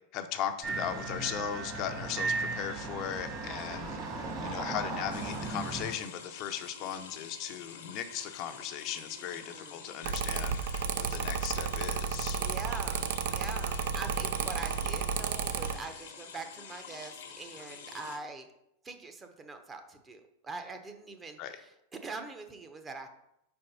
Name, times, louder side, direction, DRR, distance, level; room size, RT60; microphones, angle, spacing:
voice 1, 0.1-12.4 21.4-21.6, left 9 dB, 50° left, 7 dB, 0.6 m, -38 dB
sound 1, 0.6-5.9, right 3 dB, 45° right, 2.0 m, -36 dB
sound 2, 5.1-18.2, left 6 dB, 75° left, 1.0 m, -47 dB
voice 2, 9.2-9.9 10.7-10.8 12.4-18.5 18.8-21.7 22.0-23.1, right 3 dB, 20° right, 6 dB, 0.8 m, -43 dB
Mechanical fan, 10.0-15.8, right 7 dB, 70° right, 0.5 m, -32 dB
4.7 x 4.4 x 5.4 m, 0.80 s
hypercardioid pair, 110°, 0 cm